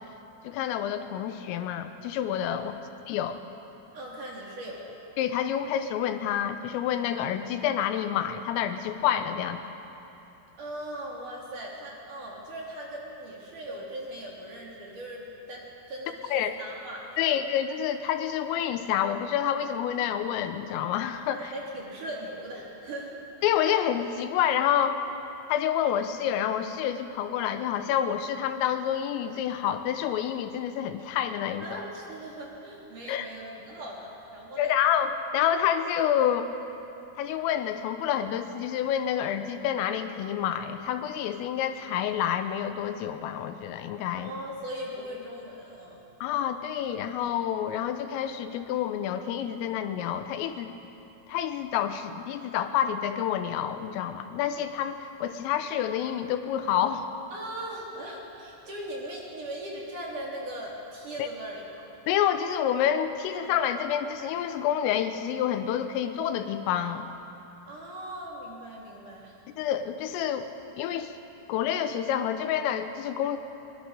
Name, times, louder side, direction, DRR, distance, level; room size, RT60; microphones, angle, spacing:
voice 1, 0.4-2.7 3.1-3.4 5.2-9.6 16.3-16.6 17.2-21.5 23.4-25.0 25.5-31.8 33.1-33.3 34.6-36.5 37.2-44.3 46.2-50.7 51.3-57.1 61.2-61.3 62.1-67.1 69.6-70.5 70.8-71.1 71.5-73.4, left 9 dB, 85° left, 8 dB, 3.6 m, -28 dB
voice 2, 2.5-2.8 3.9-4.8 10.6-17.3 21.3-23.2 31.6-34.8 44.1-46.1 57.3-61.6 67.7-69.4, right 1 dB, 45° right, -3 dB, 4.2 m, -39 dB
22.5 x 22.0 x 6.7 m, 2.9 s
omnidirectional pair, 5.8 m